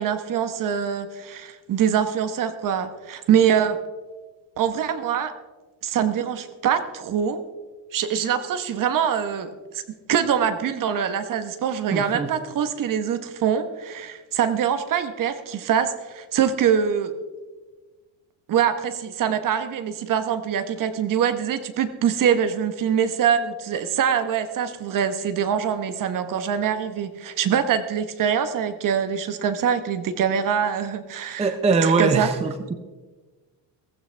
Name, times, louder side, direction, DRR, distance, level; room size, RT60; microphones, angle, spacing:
voice 1, 0.0-3.8 4.6-5.3 5.8-7.4 7.9-9.8 10.1-17.1 18.5-31.5 31.8-32.3, right 8 dB, 45° right, 10 dB, 1.1 m, -24 dB
voice 2, 11.9-12.3 31.4-32.7, right 4 dB, 15° right, 7 dB, 0.6 m, -22 dB
16.5 x 15.0 x 3.4 m, 1.3 s
cardioid pair, 165°, 44 cm